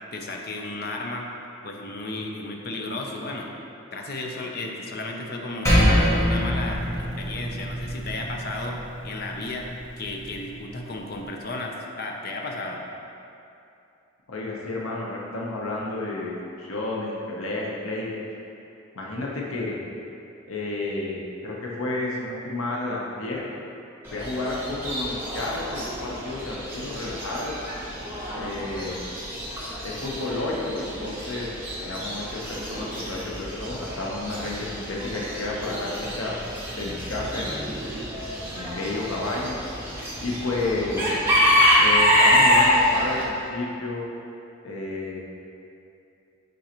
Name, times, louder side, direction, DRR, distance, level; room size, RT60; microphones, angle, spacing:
voice 1, 0.1-1.3 1.6-3.5 3.9-8.8 9.0-9.7 10.0-12.8, left 2 dB, 45° left, 1 dB, 0.6 m, -33 dB
Percussion, 5.7-10.4, equal, 15° left, 1.3 m, -25 dB
voice 2, 14.3-18.3 18.9-19.8 20.5-23.4 24.1-27.6 28.3-29.0 29.8-31.5 31.8-36.3 36.8-37.5 38.5-39.6 40.2-41.2 41.8-44.0 44.6-45.2, left 2 dB, 85° left, -3 dB, 0.9 m, -31 dB
Chicken rooster / Bird, 24.0-43.2, equal, 10° right, 1.1 m, -26 dB
10.0 x 3.9 x 3.0 m, 2.7 s
head